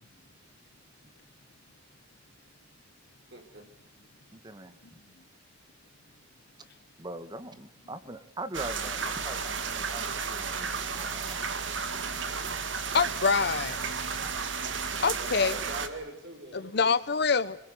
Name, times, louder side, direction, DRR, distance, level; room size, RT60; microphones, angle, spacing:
voice 1, 3.3-3.6 14.9-16.8, right 2 dB, 65° right, 7.2 m, -42 dB
voice 2, 4.3-4.8 6.6-6.7 7.0-12.3, right 2 dB, 25° right, 2.2 m, -42 dB
sound 1, 8.5-15.9, right 5 dB, 85° right, 2.4 m, -33 dB
voice 3, 12.9-13.8 15.0-15.6 16.5-17.6, left 5 dB, 65° left, 1.0 m, -25 dB
26.0 x 21.5 x 8.4 m
head